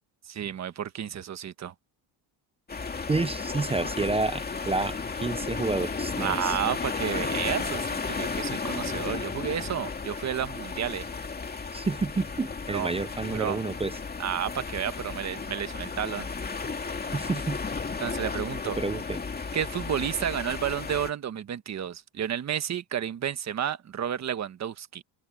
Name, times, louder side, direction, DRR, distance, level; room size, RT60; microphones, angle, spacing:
voice 1, 0.2-1.7 6.2-11.1 12.7-12.9 13.3-13.6 14.2-16.3 18.0-18.8 19.5-25.0, right 9 dB, 35° right, 1.3 m, -31 dB
sound 1, 2.7-21.1, left 4 dB, 20° left, 2.3 m, -34 dB
voice 2, 3.1-6.5 11.7-14.0 17.1-17.6 18.6-19.2, right 3 dB, 15° right, 0.6 m, -29 dB
cardioid pair, 145°, 47 cm